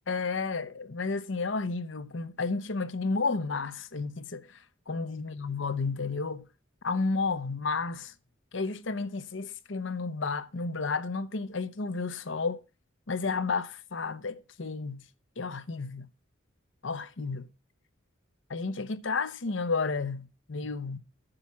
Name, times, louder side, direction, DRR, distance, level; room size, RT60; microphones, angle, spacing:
voice 1, 0.1-6.4 6.8-8.1 8.5-12.6 13.1-15.0 15.4-16.1 16.8-17.5 18.5-21.0, left 4 dB, 65° left, 0.9 m, -32 dB
9.9 x 7.4 x 5.8 m
head